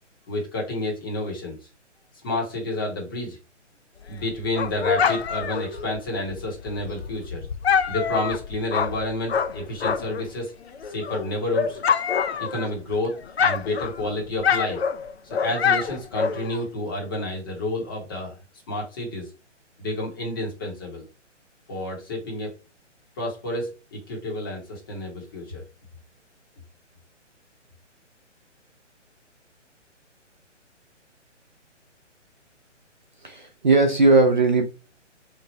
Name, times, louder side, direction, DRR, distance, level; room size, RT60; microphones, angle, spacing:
voice 1, 0.3-1.6 2.2-3.4 4.1-7.5 7.8-10.5 10.8-11.8 12.4-14.8 15.2-18.4 18.7-19.3 19.8-21.0 21.7-22.5 23.2-25.6, left 1 dB, 20° left, -1 dB, 0.8 m, -30 dB
Dog, 4.0-10.3 10.7-13.0 13.2-16.7, left 7 dB, 55° left, 0.4 m, -26 dB
voice 2, 33.2-34.6, right 3 dB, 40° right, 5 dB, 0.4 m, -18 dB
3.2 x 2.0 x 4.1 m, 0.31 s
figure-of-eight pair, 135°, 37 cm